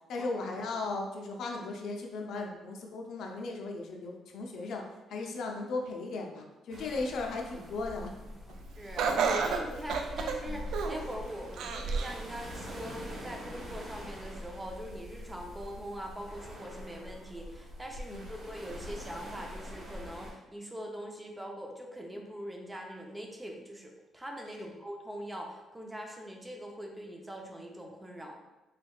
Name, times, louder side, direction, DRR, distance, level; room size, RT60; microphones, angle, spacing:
voice 1, 0.1-4.8 5.1-8.1 10.5-10.6 18.1-18.2 24.6-24.7, left 3 dB, 75° left, 1 dB, 0.5 m, -36 dB
sound 1, 6.7-20.3, equal, 50° right, 1.4 m, -44 dB
voice 2, 8.8-28.4, equal, 10° right, 1 dB, 0.6 m, -43 dB
Laughter, 9.0-11.1 11.6-12.2 12.7-12.8 13.7-13.8, right 5 dB, 80° right, 0.3 m, -30 dB
4.0 x 3.3 x 2.3 m, 1.0 s
cardioid pair, 90°, 0 cm